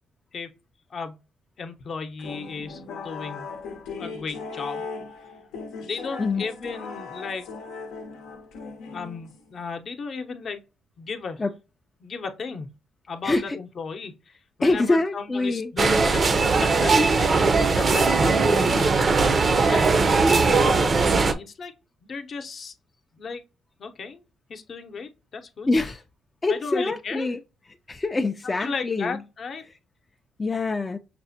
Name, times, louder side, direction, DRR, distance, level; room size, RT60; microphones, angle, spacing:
voice 1, 1.6-3.5 4.0-4.9 5.8-7.5 8.9-10.6 11.0-11.4 12.0-12.7 13.1-21.7 22.0-22.7 23.1-23.4 23.8-25.7 26.5-27.3 28.6-29.6, left 5 dB, 50° left, 0.7 m, -35 dB
sound 1, 2.2-9.6, left 4 dB, 90° left, 0.7 m, -38 dB
voice 2, 13.2-13.6 14.6-15.7 25.7-26.0 26.4-27.4 27.9-29.2 30.4-31.0, left 2 dB, 25° left, 0.3 m, -24 dB
sound 2, 15.8-21.3, right 4 dB, 40° right, 0.5 m, -19 dB
5.9 x 2.1 x 2.7 m
cardioid pair, 90°, 0 cm